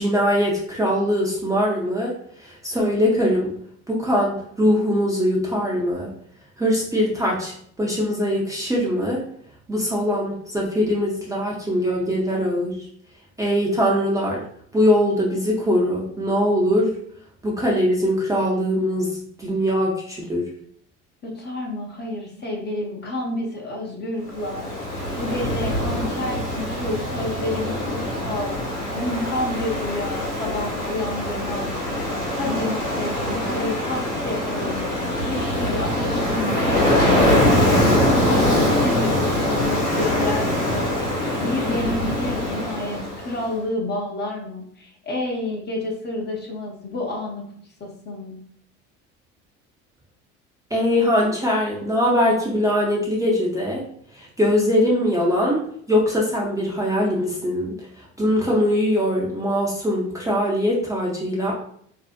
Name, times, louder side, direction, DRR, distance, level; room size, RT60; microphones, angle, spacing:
voice 1, 0.0-2.1 2.4-3.5 3.9-6.1 6.6-9.2 9.7-12.7 13.4-14.4 14.7-16.9 17.4-20.5 50.7-53.8 54.1-55.6 55.9-57.8 58.2-61.5, equal, 10° right, -4 dB, 0.5 m, -21 dB
voice 2, 21.2-28.6 28.9-31.7 32.4-34.9 35.3-37.7 38.0-40.9 41.4-47.4 47.8-48.4, left 2 dB, 30° left, -1 dB, 0.7 m, -29 dB
Ocean, 24.3-43.4, left 1 dB, 85° left, 1.1 m, -23 dB
2.6 x 2.0 x 2.4 m, 0.64 s
hypercardioid pair, 75°, 36 cm